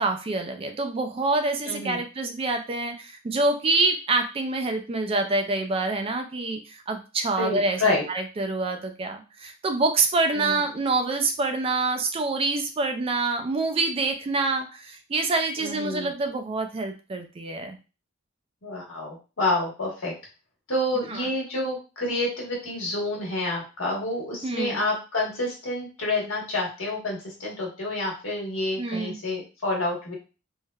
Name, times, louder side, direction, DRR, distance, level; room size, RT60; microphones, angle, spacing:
voice 1, 0.0-17.8 21.1-21.2 24.4-24.8 28.8-29.2, right 3 dB, 30° right, 6 dB, 0.3 m, -26 dB
voice 2, 1.6-2.0 7.4-8.0 10.3-10.6 15.6-16.1 18.6-20.1 20.7-30.1, left 2 dB, 85° left, -2 dB, 1.2 m, -28 dB
3.1 x 2.1 x 2.3 m, 0.32 s
head